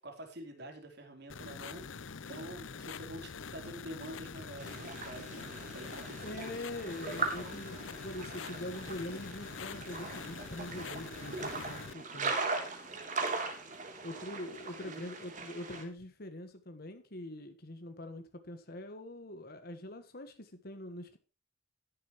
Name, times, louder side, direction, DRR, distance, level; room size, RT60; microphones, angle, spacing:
voice 1, 0.0-6.5 14.8-15.0, right 1 dB, 60° right, 4.0 m, -47 dB
sound 1, 1.3-11.9, left 5 dB, 85° left, 0.7 m, -45 dB
sound 2, 4.6-15.8, right 3 dB, 45° right, 3.4 m, -39 dB
voice 2, 6.2-12.4 14.0-21.2, left 1 dB, 55° left, 1.5 m, -43 dB
14.0 x 11.5 x 3.2 m
head